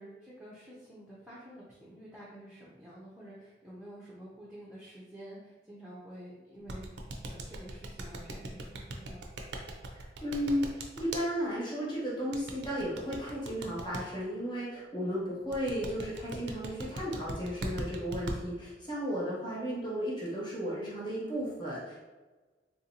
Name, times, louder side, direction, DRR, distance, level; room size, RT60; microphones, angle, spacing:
voice 1, 0.0-9.2, right 1 dB, 5° right, -8 dB, 0.5 m, -49 dB
sound 1, 6.7-11.2 12.3-14.0 15.5-18.4, right 2 dB, 70° right, 0.5 m, -39 dB
voice 2, 9.9-22.0, equal, 25° left, -7 dB, 1.0 m, -34 dB
3.6 x 2.6 x 2.8 m, 1.2 s
head